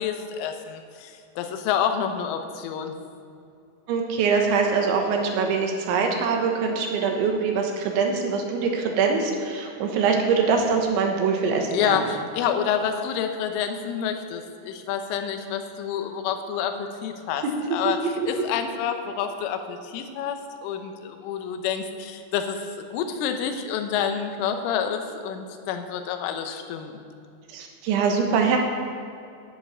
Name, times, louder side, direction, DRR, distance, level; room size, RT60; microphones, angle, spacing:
voice 1, 0.0-3.0 11.7-17.4 17.7-27.0, left 8 dB, 80° left, 6 dB, 3.3 m, -28 dB
voice 2, 3.9-12.0 27.5-28.6, right 5 dB, 75° right, 2 dB, 3.3 m, -23 dB
11.0 x 8.0 x 8.7 m, 2.5 s
omnidirectional pair, 5.9 m